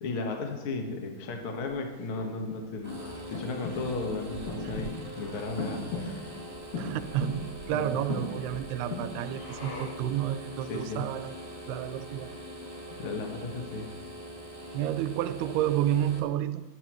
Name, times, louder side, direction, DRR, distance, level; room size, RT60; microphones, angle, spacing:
voice 1, 0.0-3.0 3.3-6.3 7.7-7.9 10.7-11.0 12.9-13.9, left 3 dB, 65° left, 2 dB, 1.3 m, -35 dB
Breathing, 1.6-10.1, left 2 dB, 80° left, 6.1 m, -40 dB
sound 1, 2.8-16.2, equal, 10° right, 1.5 m, -42 dB
voice 2, 6.8-11.3 11.7-12.3 14.7-16.6, right 11 dB, 80° right, 12 dB, 2.5 m, -30 dB
19.5 x 12.0 x 3.1 m, 1.2 s
omnidirectional pair, 4.7 m